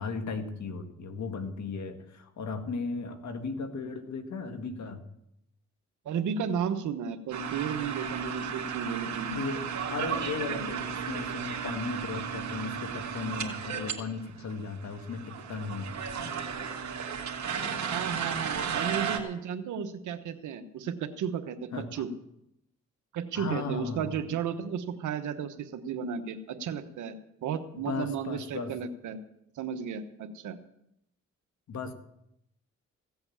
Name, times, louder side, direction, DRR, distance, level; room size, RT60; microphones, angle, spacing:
voice 1, 0.0-5.0 9.3-9.7 9.9-16.4 21.7-22.0 23.4-24.2 27.8-28.7 31.7-31.9, left 4 dB, 70° left, 7 dB, 1.8 m, -36 dB
voice 2, 6.0-9.3 10.5-10.6 17.9-22.1 23.1-27.2 27.4-29.2 29.6-30.6, right 7 dB, 90° right, 9 dB, 1.2 m, -34 dB
sound 1, 7.3-13.9 14.2-14.3 14.4-19.2, right 7 dB, 70° right, 2.1 m, -34 dB
16.0 x 7.9 x 7.2 m, 0.81 s
cardioid pair, 60°, 29 cm